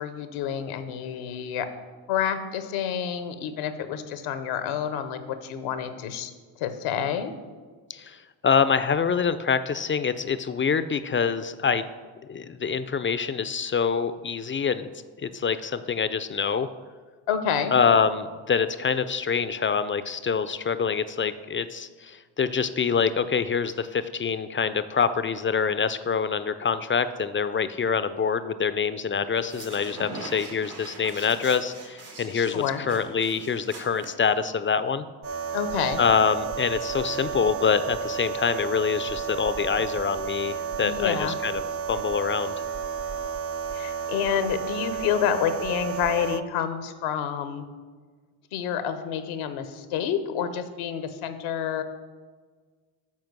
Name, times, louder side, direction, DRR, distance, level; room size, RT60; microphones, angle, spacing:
voice 1, 0.0-1.7 2.1-6.3 6.6-7.3 17.3-17.7 32.3-32.8 35.5-36.0 40.8-41.3 43.7-47.6 48.5-51.8, left 8 dB, 80° left, 10 dB, 0.8 m, -28 dB
voice 2, 7.9-11.8 12.3-14.9 15.2-16.7 17.7-35.1 36.0-41.6 41.9-42.5, left 6 dB, 25° left, 13 dB, 0.4 m, -25 dB
sound 1, 29.3-34.7, right 2 dB, 80° right, 2.1 m, -42 dB
sound 2, 35.2-46.4, right 6 dB, 30° right, 0.5 m, -32 dB
7.5 x 4.5 x 6.0 m, 1.5 s
hypercardioid pair, 50°, 48 cm